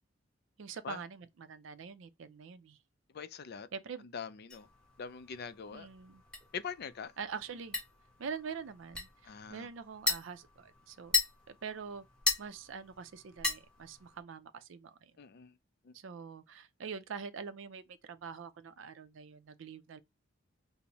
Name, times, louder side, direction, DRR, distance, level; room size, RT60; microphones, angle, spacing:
voice 1, 0.6-2.8 3.7-4.1 5.7-6.2 7.2-7.8 8.2-11.2 11.5-12.0 12.4-15.1 15.9-20.0, right 6 dB, 75° right, 0.5 m, -44 dB
voice 2, 3.1-3.7 4.1-4.7 5.0-5.9 6.5-7.1 9.2-9.7 15.2-15.5 15.8-15.9, left 6 dB, 55° left, 0.4 m, -43 dB
sound 1, 4.5-14.2, left 3 dB, 5° left, 1.1 m, -38 dB
5.3 x 2.0 x 2.9 m
head